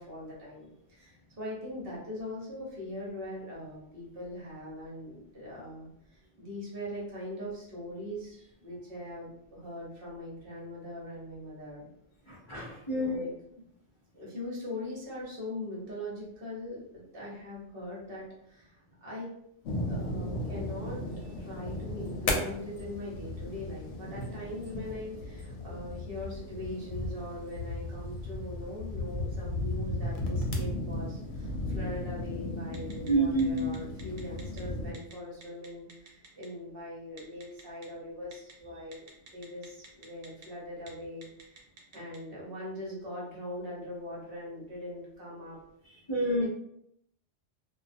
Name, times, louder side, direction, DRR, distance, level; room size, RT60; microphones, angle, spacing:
voice 1, 0.0-11.9 12.9-13.3 14.1-19.3 19.9-41.6 41.9-45.6 46.3-46.5, left 1 dB, 60° right, -5 dB, 1.0 m, -41 dB
voice 2, 12.3-13.2 33.1-33.8 45.8-46.5, right 1 dB, 35° left, -8 dB, 0.5 m, -28 dB
sound 1, 19.6-34.9, left 1 dB, 70° left, 0.8 m, -36 dB
Telephone, 32.7-33.1 33.4-34.6 34.9-35.1 35.4-36.5 37.2-37.9 38.3-38.5 38.9-40.5 40.8-40.9 41.2-42.2, right 4 dB, 80° right, 0.9 m, -50 dB
2.2 x 2.2 x 2.5 m, 0.75 s
omnidirectional pair, 1.2 m